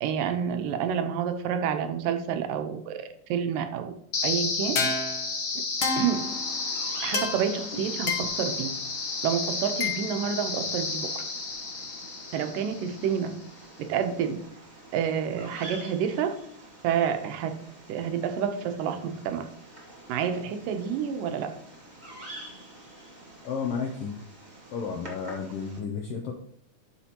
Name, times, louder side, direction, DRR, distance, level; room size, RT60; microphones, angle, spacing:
voice 1, 0.0-4.0 4.2-4.8 5.6-5.7 6.0-6.3 7.0-8.8 9.2-11.1 12.3-13.4 13.8-14.4 14.9-16.4 16.8-17.6 17.9-19.5 20.1-21.5, right 8 dB, 90° right, 7 dB, 2.5 m, -29 dB
sound 1, 4.1-13.2, left 4 dB, 55° left, 1.6 m, -30 dB
Bird vocalization bird call bird song, 5.8-25.8, right 1 dB, 30° right, 0.8 m, -47 dB
voice 2, 23.4-24.2 24.7-26.3, left 6 dB, 80° left, 1 dB, 1.3 m, -32 dB
11.5 x 6.0 x 2.9 m, 0.64 s
omnidirectional pair, 3.8 m